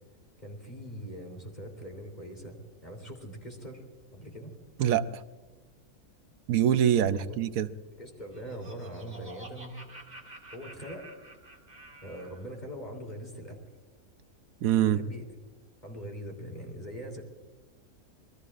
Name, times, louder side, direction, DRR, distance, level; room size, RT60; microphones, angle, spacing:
voice 1, 0.4-3.8 4.1-4.6 7.1-7.4 8.0-9.8 10.1-11.1 12.0-13.6 14.8-15.3 15.8-17.2, equal, 30° left, 1 dB, 3.5 m, -42 dB
voice 2, 4.8-5.2 6.5-7.7 14.6-15.0, right 10 dB, 80° right, 12 dB, 1.1 m, -24 dB
Laughter, 8.0-12.5, right 2 dB, 30° right, 2.5 m, -50 dB
27.0 x 21.5 x 2.5 m, 1.2 s
omnidirectional pair, 1.5 m